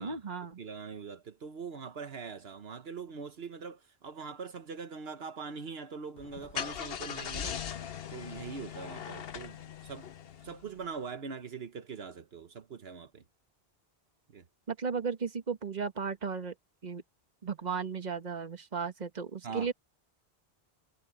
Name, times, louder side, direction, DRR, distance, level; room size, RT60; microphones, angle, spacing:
voice 1, 0.0-0.6 14.7-16.5 16.8-17.0 17.4-19.7, right 5 dB, 45° right, 1.5 m, -35 dB
voice 2, 0.6-7.6 8.1-10.1 10.4-13.2 14.3-14.4 19.4-19.7, right 5 dB, 75° right, 1.3 m, -42 dB
Car / Engine starting, 6.2-10.8, left 8 dB, 70° left, 1.0 m, -40 dB
omnidirectional pair, 1.0 m